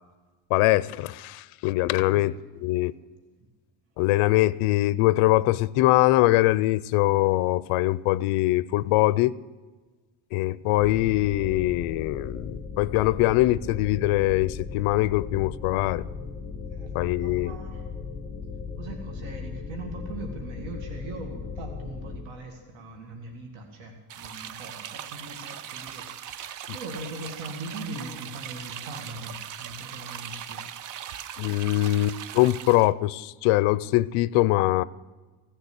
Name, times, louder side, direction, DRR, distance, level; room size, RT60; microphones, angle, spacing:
voice 1, 0.5-2.3 2.6-2.9 4.0-9.3 10.3-16.0 16.9-17.6 31.4-34.8, left 17 dB, 80° left, 0.6 m, -22 dB
voice 2, 2.0-2.3 16.7-17.9 18.8-30.6, right 2 dB, 65° right, 2.3 m, -41 dB
sound 1, 10.8-22.2, left 5 dB, 5° left, 0.7 m, -37 dB
sound 2, 24.1-32.9, right 10 dB, 40° right, 0.4 m, -39 dB
16.5 x 6.8 x 9.7 m
cardioid pair, 175°, 50 cm